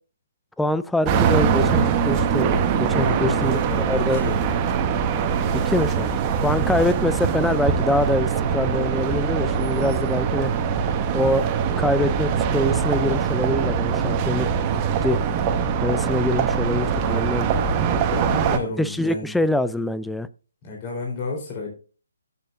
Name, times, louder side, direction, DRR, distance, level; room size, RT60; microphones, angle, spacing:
voice 1, 0.6-2.5 2.8-4.2 5.5-10.5 11.1-11.4 11.8-14.5 14.7-15.2 15.8-17.5 18.8-20.3, left 1 dB, ahead, 14 dB, 0.4 m, -24 dB
sound 1, 1.1-18.6, right 7 dB, 25° right, 1.1 m, -22 dB
voice 2, 3.0-4.4 6.4-6.7 17.0-17.4 18.1-19.4 20.6-21.7, left 3 dB, 30° left, -1 dB, 3.9 m, -31 dB
13.5 x 6.8 x 2.6 m, 0.36 s
figure-of-eight pair, 140°, 0 cm